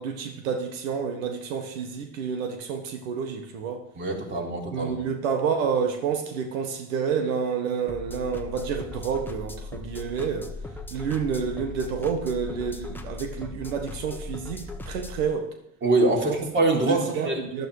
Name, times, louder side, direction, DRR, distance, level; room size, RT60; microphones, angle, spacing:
voice 1, 0.0-3.8 4.7-10.5 10.9-15.5 16.9-17.7, right 6 dB, 85° right, 5 dB, 1.6 m, -29 dB
voice 2, 4.0-4.9 15.8-17.4, right 2 dB, 30° right, 1 dB, 3.6 m, -24 dB
sound 1, 7.9-15.3, left 2 dB, 5° left, 1.3 m, -38 dB
12.5 x 12.0 x 4.9 m, 0.78 s
supercardioid pair, 110°, 39 cm